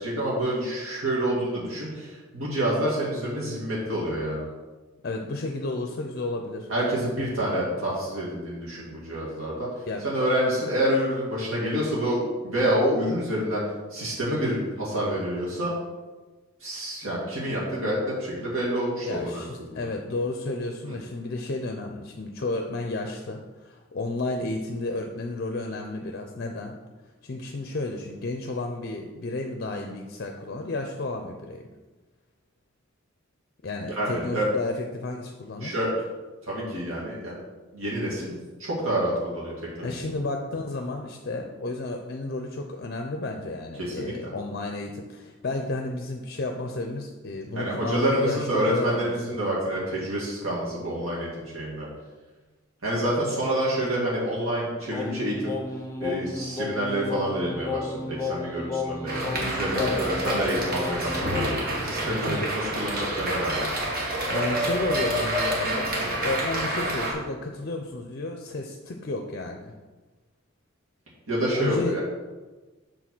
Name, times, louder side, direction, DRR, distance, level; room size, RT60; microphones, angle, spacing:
voice 1, 0.0-4.5 6.7-9.7 10.0-13.6 13.9-15.7 16.6-19.8 20.8-21.0 34.0-34.5 35.6-35.9 36.4-37.3 37.7-39.9 43.8-44.3 47.5-51.9 52.8-55.5 56.0-61.5 61.8-63.8 65.9-66.1 71.3-72.0, right 1 dB, 80° right, -6 dB, 1.9 m, -28 dB
voice 2, 5.0-6.7 9.9-10.0 19.0-26.8 27.2-31.6 33.6-35.7 39.8-49.4 59.7-60.0 62.0-62.5 64.3-65.9 66.2-69.7 71.5-72.0, left 2 dB, 50° left, 4 dB, 0.5 m, -32 dB
Singing, 54.9-61.7, left 3 dB, 15° left, 0.7 m, -33 dB
sound 1, 59.1-67.1, right 1 dB, 45° right, 1.5 m, -28 dB
7.2 x 3.9 x 6.0 m, 1.2 s
head